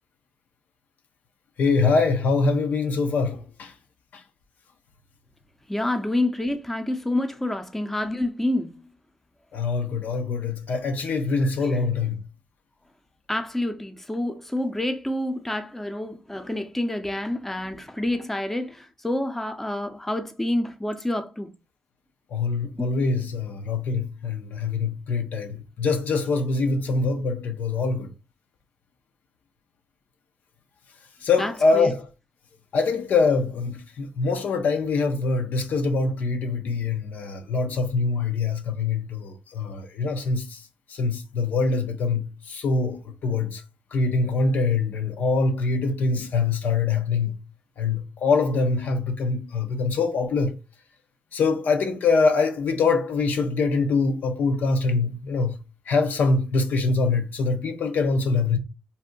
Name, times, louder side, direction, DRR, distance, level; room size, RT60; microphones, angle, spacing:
voice 1, 1.6-3.7 9.5-12.2 22.3-28.1 31.2-32.1 32.7-40.6 40.9-43.6 43.9-47.4 47.8-50.5 51.3-55.6 55.9-58.6, left 4 dB, 70° left, 0.5 m, -24 dB
voice 2, 5.7-8.8 11.3-11.8 13.3-21.5 22.8-22.9 31.4-31.9, left 1 dB, 10° left, 0.6 m, -28 dB
2.6 x 2.1 x 3.7 m
supercardioid pair, 55°, 3 cm